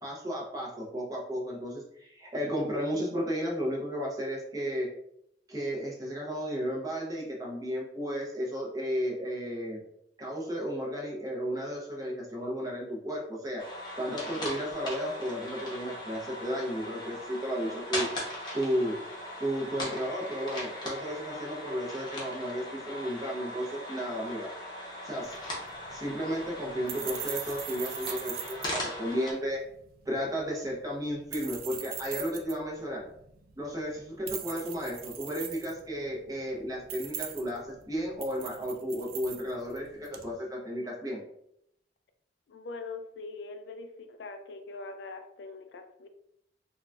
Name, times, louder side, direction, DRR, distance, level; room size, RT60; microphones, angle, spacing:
voice 1, 0.0-4.9 5.5-9.8 10.2-13.6 14.0-18.1 18.5-18.9 19.4-24.5 25.0-25.4 25.9-29.6 30.1-33.0 33.6-41.2, equal, 20° right, -3 dB, 0.7 m, -33 dB
sound 1, 13.6-29.3, left 1 dB, 25° left, 0.8 m, -39 dB
sound 2, 25.2-40.3, right 9 dB, 55° right, 0.3 m, -42 dB
voice 2, 42.5-46.1, left 3 dB, 65° left, 6 dB, 0.3 m, -42 dB
3.8 x 2.3 x 2.3 m, 0.75 s
head